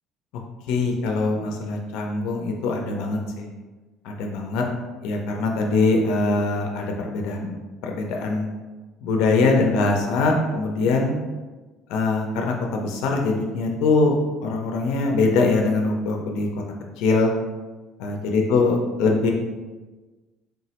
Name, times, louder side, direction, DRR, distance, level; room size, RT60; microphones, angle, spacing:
voice 1, 0.7-3.5 4.0-4.6 5.0-7.6 7.8-8.5 9.0-11.2 11.9-14.1 14.4-16.5 17.0-17.3 18.0-19.3, left 3 dB, 75° left, 1 dB, 0.4 m, -22 dB
3.3 x 2.0 x 2.8 m, 1.2 s
supercardioid pair, 100°, 0 cm